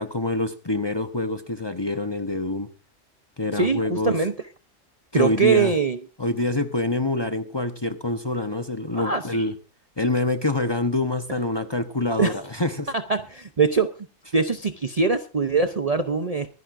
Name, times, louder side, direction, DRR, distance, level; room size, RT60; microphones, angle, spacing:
voice 1, 0.0-2.7 3.4-4.2 5.1-5.7 6.2-9.5 10.0-12.9, left 2 dB, 25° left, 7 dB, 0.8 m, -26 dB
voice 2, 3.5-4.3 5.1-6.0 8.9-9.4 12.2-12.3 12.9-13.9 14.3-16.5, right 5 dB, 35° right, 8 dB, 0.7 m, -22 dB
23.5 x 10.5 x 2.6 m, 0.32 s
omnidirectional pair, 1.3 m